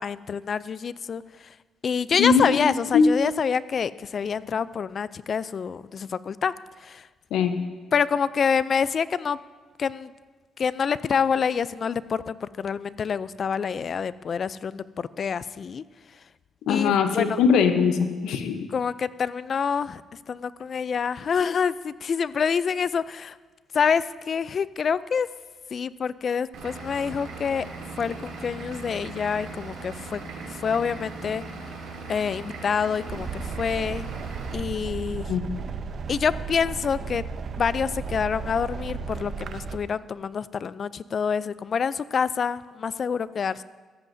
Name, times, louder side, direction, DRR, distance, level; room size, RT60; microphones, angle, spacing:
voice 1, 0.0-1.5 1.8-6.5 6.8-7.1 7.9-9.4 9.8-10.1 10.6-15.8 16.7-17.4 18.7-20.0 20.3-23.4 23.7-25.3 25.7-27.7 28.0-30.2 30.5-31.4 32.1-34.1 34.5-35.3 36.1-37.2 37.6-43.6, left 6 dB, 50° left, 17 dB, 0.3 m, -27 dB
voice 2, 2.1-2.5 2.9-3.1 7.3-7.6 16.7-18.7 35.3-35.4, left 6 dB, 85° left, 8 dB, 0.8 m, -21 dB
Vehicle / Engine, 26.5-34.5, right 3 dB, 85° right, 2.6 m, -39 dB
sound 1, 33.1-39.8, right 5 dB, 55° right, 0.7 m, -34 dB
15.5 x 14.0 x 2.7 m, 1.3 s
cardioid pair, 90°, 0 cm